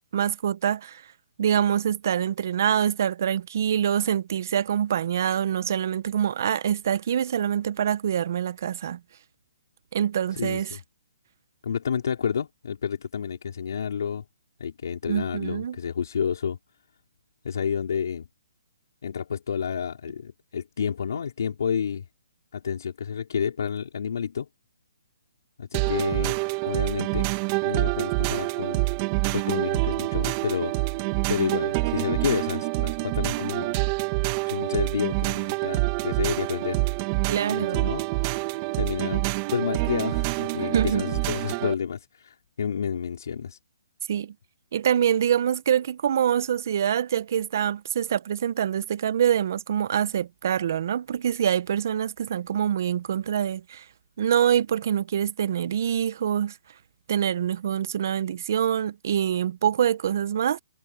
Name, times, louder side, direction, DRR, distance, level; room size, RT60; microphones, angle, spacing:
voice 1, 0.1-1.0 1.4-9.0 9.9-10.8 15.1-15.8 37.3-37.9 40.7-41.0 44.1-44.3 44.7-53.8 54.2-56.6 57.1-60.6, right 9 dB, 50° right, 0.8 m, -25 dB
voice 2, 11.6-14.2 14.6-16.6 17.4-18.2 19.0-22.0 22.5-24.5 25.6-26.4 26.6-27.3 27.6-28.8 29.3-30.9 31.3-33.8 34.5-36.8 37.5-38.0 38.8-43.6, left 7 dB, 65° left, 4.3 m, -30 dB
sound 1, 25.7-41.7, right 23 dB, 25° right, 1.5 m, -27 dB
hypercardioid pair, 160°, 2 cm